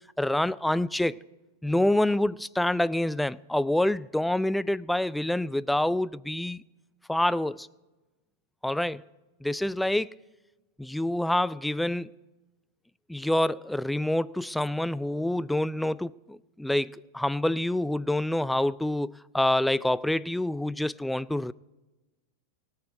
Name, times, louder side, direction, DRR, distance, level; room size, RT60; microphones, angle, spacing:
voice 1, 0.2-1.2 1.6-6.6 7.1-7.7 8.6-9.0 9.4-10.1 10.8-12.1 13.1-21.5, left 1 dB, 5° left, 0.3 m, -27 dB
19.0 x 8.9 x 4.7 m
hypercardioid pair, 100°, 0 cm